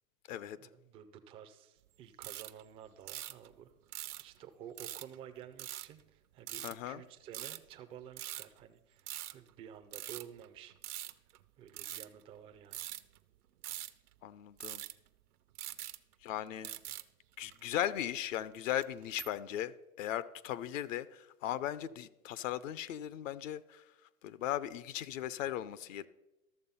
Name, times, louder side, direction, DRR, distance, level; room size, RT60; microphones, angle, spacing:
voice 1, 0.6-3.7 4.2-11.1 11.6-12.8, right 9 dB, 15° right, 0.3 m, -52 dB
sound 1, 2.2-2.6 3.1-3.5 3.9-4.4 4.8-5.2 5.6-5.9 6.5-6.7 7.3-7.7 8.2-8.6 9.0-9.5 9.9-11.4 11.7-12.1 12.7-13.2 13.6-14.1 14.6-15.1 15.6-16.4 16.6-17.0 17.4-17.6 18.6-19.3, right 13 dB, 85° right, 0.8 m, -43 dB
voice 2, 6.6-7.0 14.2-14.8 16.2-16.7 17.4-19.7 20.0-23.8 24.2-26.1, left 12 dB, 60° left, 0.7 m, -37 dB
13.0 x 6.8 x 5.4 m
hypercardioid pair, 125°, 43 cm